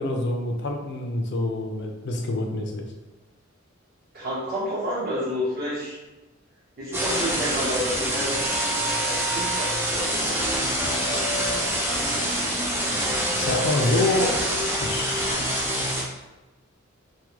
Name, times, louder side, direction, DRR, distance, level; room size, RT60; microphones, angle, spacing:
voice 1, 0.0-2.8 13.3-14.4 14.8-15.5, left 2 dB, 60° left, 2 dB, 0.5 m, -26 dB
voice 2, 4.1-6.0 6.8-8.3 9.0-10.4, equal, 50° right, -9 dB, 1.4 m, -30 dB
sound 1, 6.9-16.0, right 1 dB, 10° right, 0.5 m, -25 dB
3.5 x 2.2 x 3.0 m, 1.1 s
head